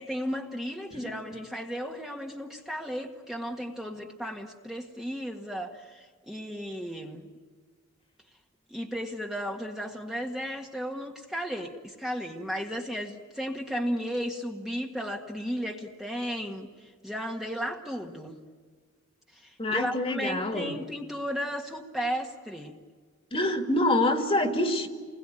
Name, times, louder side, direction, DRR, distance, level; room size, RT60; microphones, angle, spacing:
voice 1, 0.0-7.3 8.7-18.4 19.3-22.8, equal, ahead, 0 dB, 1.8 m, -34 dB
voice 2, 19.6-20.7 23.3-24.9, left 1 dB, 30° left, 5 dB, 2.3 m, -26 dB
30.0 x 21.5 x 9.1 m, 1.5 s
head